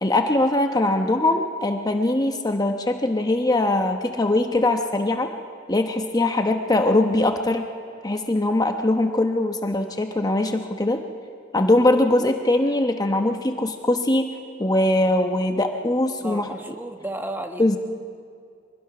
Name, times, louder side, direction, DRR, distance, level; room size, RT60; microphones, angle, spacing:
voice 1, 0.0-5.3 5.7-7.7 8.0-11.0 11.5-14.3 14.6-16.5 17.6-17.8, left 2 dB, 20° left, 5 dB, 1.0 m, -21 dB
voice 2, 16.2-17.8, right 1 dB, 10° right, 5 dB, 1.2 m, -33 dB
24.5 x 20.5 x 6.1 m, 2.3 s
head